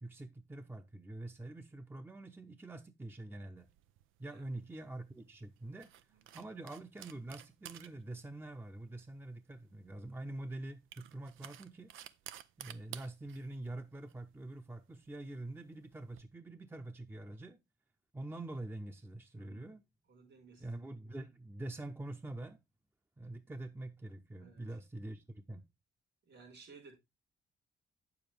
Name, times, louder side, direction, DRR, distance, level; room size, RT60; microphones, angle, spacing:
voice 1, 0.0-3.7 4.2-5.9 6.3-11.9 12.6-17.6 18.1-19.8 20.6-22.6 23.2-25.6, right 2 dB, 10° right, 0.7 m, -45 dB
sound 1, 3.6-16.2, right 12 dB, 85° right, 0.5 m, -55 dB
voice 2, 19.4-19.8 20.1-20.8 24.4-24.6 26.2-27.0, right 4 dB, 65° right, 4.6 m, -57 dB
8.5 x 7.1 x 3.3 m
cardioid pair, 85°, 20 cm